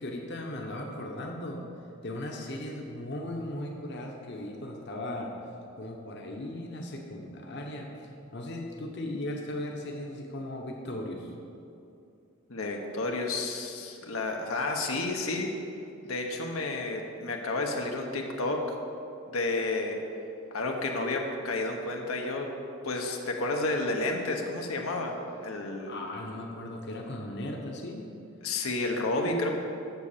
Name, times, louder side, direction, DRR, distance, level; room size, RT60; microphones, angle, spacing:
voice 1, 0.0-1.6 2.0-5.4 5.8-11.3 25.9-28.1, left 1 dB, 55° left, 0 dB, 1.0 m, -37 dB
voice 2, 12.5-15.5 16.0-18.6 19.3-20.0 20.5-22.5 22.8-25.9 28.4-29.6, left 2 dB, 85° left, 1 dB, 1.1 m, -31 dB
8.2 x 7.1 x 6.8 m, 2.7 s
head